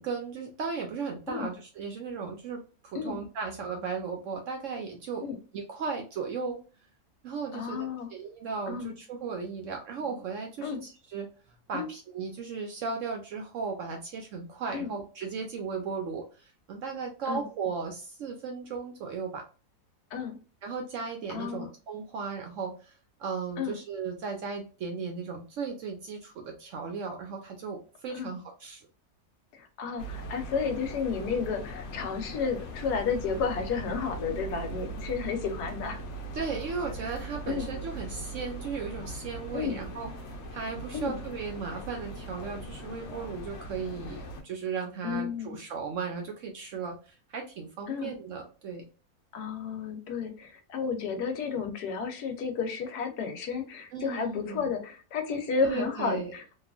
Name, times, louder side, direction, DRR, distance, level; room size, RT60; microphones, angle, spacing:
voice 1, 0.0-5.2 5.5-6.6 7.2-11.3 11.7-19.4 20.6-22.9 23.2-28.8 36.3-40.1 40.5-48.8 53.9-54.7 55.6-56.3, right 5 dB, 70° right, 3 dB, 0.8 m, -36 dB
voice 2, 7.5-8.1 8.7-8.9 10.6-10.8 11.7-11.9 14.7-14.9 17.3-17.4 20.1-20.4 21.3-21.7 23.6-23.7 28.1-28.3 29.5-36.0 37.5-37.7 39.5-39.7 40.9-41.2 45.0-45.6 47.9-48.1 49.3-56.4, left 6 dB, 80° left, 5 dB, 1.2 m, -32 dB
sound 1, 30.0-44.4, right 1 dB, 60° left, 0.8 m, -40 dB
2.8 x 2.3 x 2.4 m, 0.35 s
omnidirectional pair, 1.7 m